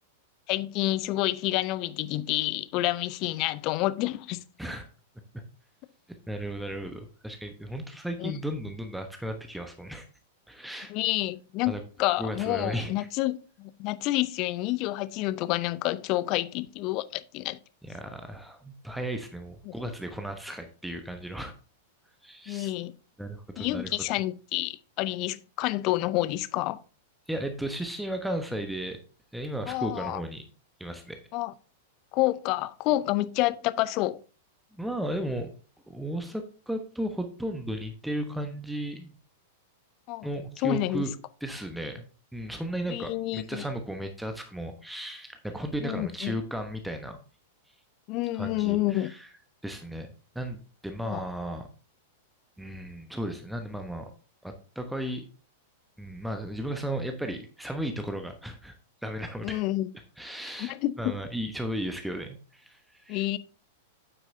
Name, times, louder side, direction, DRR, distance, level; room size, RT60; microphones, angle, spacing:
voice 1, 0.5-4.4 8.2-8.3 10.9-11.7 12.0-17.6 19.7-19.8 22.5-22.9 23.6-26.8 29.7-30.2 31.3-31.5 32.1-34.2 40.1-40.3 40.6-41.0 42.9-43.6 45.8-46.3 48.1-49.1 51.0-51.2 59.4-59.9 60.6-60.9 63.1-63.4, left 17 dB, 40° left, 0.5 m, -28 dB
voice 2, 6.3-10.1 10.5-10.9 11.6-11.8 12.2-12.9 17.8-21.5 22.2-22.7 23.2-23.9 27.3-29.0 29.3-30.4 30.8-31.2 34.7-35.5 35.9-39.1 40.2-41.1 41.4-42.0 42.3-47.2 48.3-49.3 49.6-51.7 52.6-54.1 54.4-55.3 56.0-58.7 59.0-59.6 60.2-63.3, right 1 dB, 5° right, 1.0 m, -35 dB
8.9 x 8.1 x 2.7 m
figure-of-eight pair, 95°, 0 cm